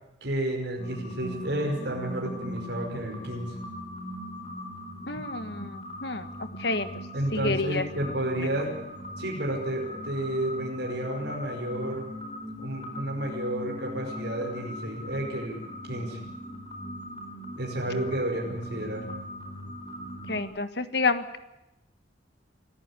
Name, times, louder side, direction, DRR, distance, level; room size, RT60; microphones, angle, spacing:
voice 1, 0.2-3.6 7.1-8.7 9.2-12.0 12.6-15.6 15.9-16.2 17.6-19.0, right 1 dB, 60° right, 0 dB, 5.5 m, -31 dB
sound 1, 0.8-20.4, left 1 dB, 30° left, 4.2 m, -39 dB
voice 2, 5.1-6.3 6.6-6.9 7.3-7.8 8.4-8.5 20.3-21.4, left 3 dB, 55° left, 10 dB, 1.6 m, -29 dB
25.5 x 14.5 x 9.9 m, 0.93 s
head